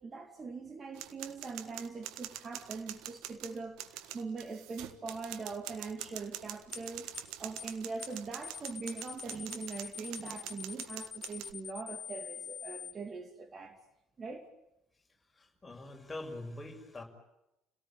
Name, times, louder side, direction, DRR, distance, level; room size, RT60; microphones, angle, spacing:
voice 1, 0.0-7.1 7.4-13.8 14.2-14.5, right 4 dB, 30° right, 2.5 m, -42 dB
sound 1, 0.9-11.5, right 13 dB, 60° right, 1.5 m, -45 dB
sound 2, 6.7-6.9 7.1-7.3 7.6-7.7 8.0-8.2 8.4-12.9, left 8 dB, 35° left, 1.2 m, -44 dB
voice 2, 15.3-17.0, left 2 dB, 15° left, 6.3 m, -44 dB
30.0 x 18.0 x 9.2 m
figure-of-eight pair, 55°, 0 cm